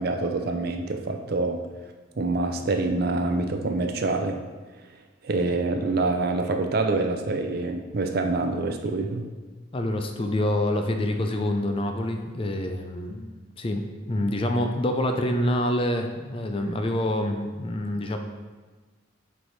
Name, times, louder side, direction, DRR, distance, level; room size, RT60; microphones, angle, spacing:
voice 1, 0.0-1.6 2.2-4.4 5.2-9.3, right 3 dB, 50° right, 5 dB, 0.5 m, -26 dB
voice 2, 9.7-13.3 13.6-18.2, left 1 dB, 25° left, 5 dB, 0.4 m, -26 dB
7.7 x 3.3 x 4.0 m, 1.3 s
head